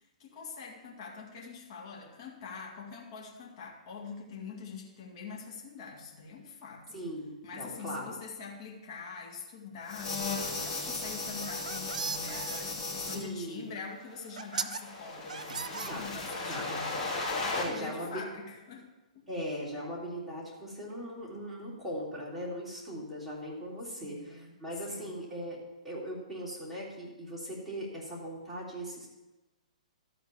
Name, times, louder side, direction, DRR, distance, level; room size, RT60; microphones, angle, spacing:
voice 1, 0.2-7.0 7.4-16.9 17.4-18.9 24.0-24.6 24.9-25.1, left 5 dB, 45° left, -1 dB, 2.1 m, -44 dB
voice 2, 6.9-8.1 13.1-13.7 15.8-16.1 16.4-16.7 17.6-18.2 19.3-25.6 25.8-29.1, equal, ahead, -8 dB, 3.5 m, -39 dB
sound 1, 9.9-13.2 14.3-17.6, left 3 dB, 20° left, 2.8 m, -36 dB
sound 2, 11.4-12.6 13.8-13.9 14.4-14.8 15.3-16.4, right 6 dB, 90° right, 0.5 m, -37 dB
13.0 x 4.5 x 7.1 m, 1.1 s
hypercardioid pair, 145°, 4 cm